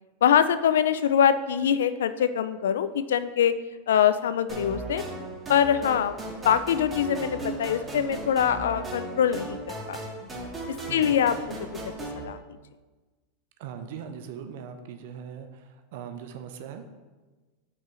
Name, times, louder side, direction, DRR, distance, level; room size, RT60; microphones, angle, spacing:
voice 1, 0.2-3.5 3.9-5.0 5.5-6.2 6.4-10.3 10.9-11.6 12.2-12.4, left 9 dB, 90° left, 12 dB, 0.4 m, -24 dB
sound 1, 4.5-12.2, right 2 dB, 20° right, 1.7 m, -36 dB
voice 2, 13.6-16.9, right 7 dB, 70° right, 7 dB, 0.7 m, -40 dB
5.7 x 4.7 x 5.0 m, 1.3 s
supercardioid pair, 120°, 0 cm